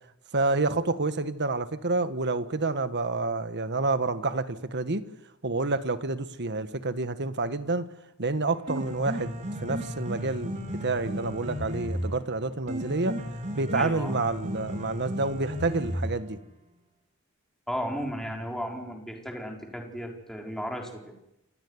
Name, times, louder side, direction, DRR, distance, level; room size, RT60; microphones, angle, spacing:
voice 1, 0.3-5.0 5.4-7.9 8.2-13.2 13.5-16.4, right 3 dB, 55° right, 11 dB, 1.5 m, -28 dB
Piano, 8.5-16.5, equal, 35° right, 4.2 m, -34 dB
voice 2, 13.7-14.1 17.7-21.1, equal, ahead, 1 dB, 4.5 m, -34 dB
29.0 x 16.5 x 9.8 m, 0.88 s
head